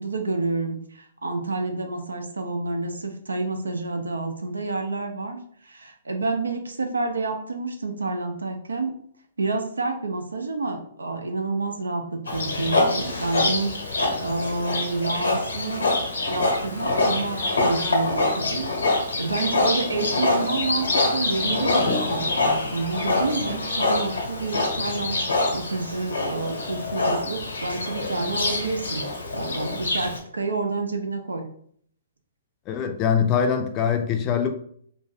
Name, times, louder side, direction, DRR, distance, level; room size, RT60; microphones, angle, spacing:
voice 1, 0.0-5.4 5.6-8.9 9.4-15.9 16.3-18.7 19.2-25.2 25.5-31.4, right 3 dB, 90° right, 0.5 m, -29 dB
Livestock farm animals working animals, 12.3-30.2, left 2 dB, 85° left, 1.1 m, -25 dB
voice 2, 32.7-34.5, left 7 dB, 30° left, 0.4 m, -23 dB
2.5 x 2.2 x 3.3 m
hypercardioid pair, 125°, 0 cm